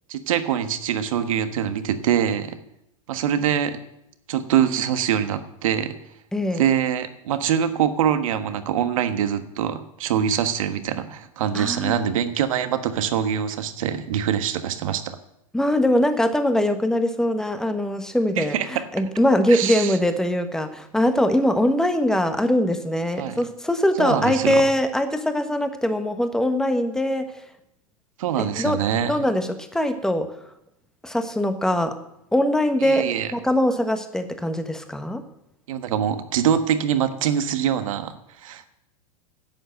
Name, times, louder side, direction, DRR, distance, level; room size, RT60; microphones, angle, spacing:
voice 1, 0.1-2.6 3.1-3.8 4.3-6.0 6.5-15.2 18.4-18.7 19.5-20.0 23.2-23.4 24.0-24.6 28.2-29.2 32.8-33.3 35.7-38.7, right 9 dB, 70° right, 9 dB, 1.4 m, -24 dB
voice 2, 6.3-6.6 11.5-12.0 15.5-27.3 28.4-30.3 31.0-32.0 32.3-33.0 33.3-35.2, left 1 dB, 5° left, 8 dB, 1.2 m, -22 dB
11.0 x 8.0 x 7.7 m, 0.82 s
hypercardioid pair, 110°, 18 cm